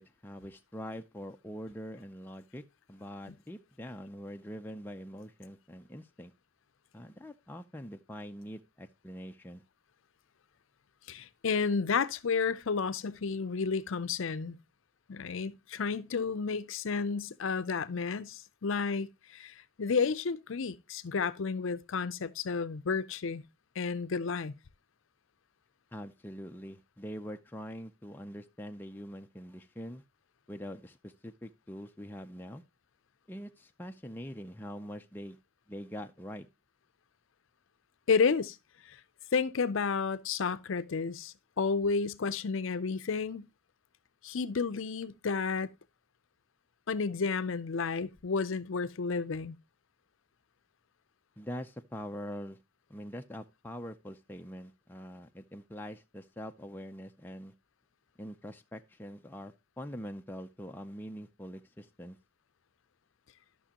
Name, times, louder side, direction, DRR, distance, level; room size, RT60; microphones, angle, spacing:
voice 1, 0.0-2.6 2.9-6.3 6.9-9.6 25.9-30.0 30.5-32.6 33.3-35.4 35.7-36.5 51.4-52.6 52.9-57.5 58.2-62.2, equal, 10° left, 0.4 m, -44 dB
voice 2, 11.1-14.6 15.1-23.4 23.8-24.5 38.1-38.6 39.3-43.5 44.2-45.7 46.9-49.5, left 5 dB, 65° left, 0.5 m, -31 dB
12.5 x 6.0 x 2.8 m
head